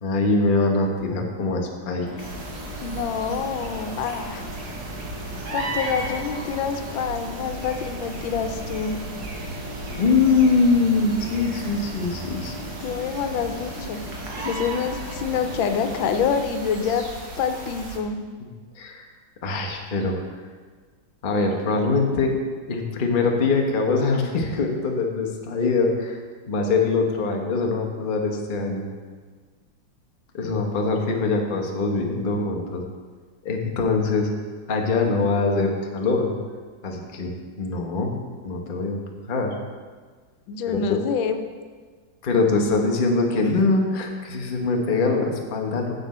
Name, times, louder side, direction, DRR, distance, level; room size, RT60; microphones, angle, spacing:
voice 1, 0.0-2.3 10.0-12.6 18.4-18.5 18.7-19.1 19.4-20.2 21.2-22.3 22.7-26.2 26.5-28.8 30.3-32.8 33.4-34.3 34.7-36.4 36.8-38.1 38.4-39.0 39.3-39.5 40.7-41.0 42.2-45.9, left 3 dB, 35° left, 1 dB, 0.8 m, -23 dB
sound 1, 2.0-16.3, equal, 15° left, 2.0 m, -38 dB
sound 2, 2.2-18.0, right 2 dB, 60° right, 1.7 m, -36 dB
voice 2, 2.8-4.4 5.5-9.0 12.8-17.1 17.4-18.2 40.5-41.4, left 6 dB, 85° left, 8 dB, 1.4 m, -27 dB
9.9 x 7.0 x 4.2 m, 1.5 s
omnidirectional pair, 2.1 m